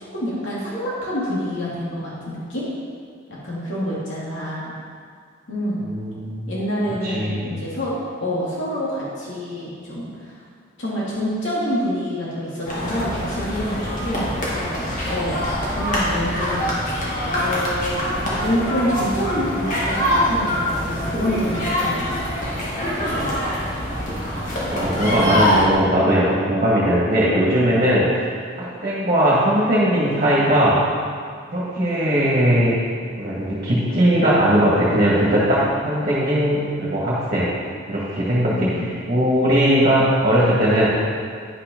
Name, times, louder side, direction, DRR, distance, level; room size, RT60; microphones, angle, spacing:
voice 1, 0.1-2.7 3.3-4.7 5.5-5.8 6.5-7.9 8.2-10.4 10.8-15.4 15.7-16.7 17.4-18.0 18.4-22.1 22.8-23.5 25.0-25.5 31.8-32.2 38.5-38.9, equal, 75° left, -7 dB, 2.4 m, -27 dB
voice 2, 5.9-6.5 7.0-7.4 24.7-28.3 28.6-30.8 31.5-32.7 33.2-37.5 37.9-38.7 39.1-40.9, equal, 40° right, -7 dB, 1.9 m, -19 dB
sound 1, 12.6-25.7, equal, 40° left, 2.1 m, -24 dB
9.8 x 5.9 x 5.4 m, 2.2 s
head